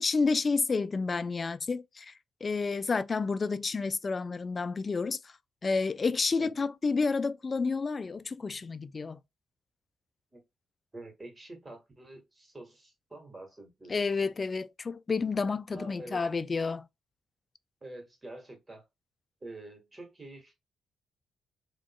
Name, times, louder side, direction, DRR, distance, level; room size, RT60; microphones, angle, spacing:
voice 1, 0.0-2.1 2.4-5.2 5.6-9.2 13.9-16.8, left 4 dB, 40° left, 0.4 m, -30 dB
voice 2, 10.9-13.9 15.7-16.3 17.8-18.8 19.4-20.5, right 2 dB, 25° right, 1.8 m, -47 dB
3.9 x 2.9 x 2.3 m
supercardioid pair, 65°, 0 cm